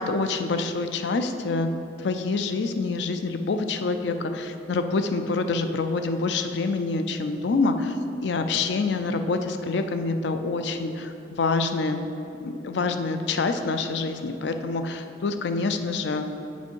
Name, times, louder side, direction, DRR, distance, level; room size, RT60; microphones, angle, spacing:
voice 1, 0.0-1.7 2.0-8.0 8.2-12.0 12.4-16.4, left 3 dB, 65° left, 8 dB, 0.4 m, -26 dB
7.2 x 5.2 x 4.5 m, 2.7 s
head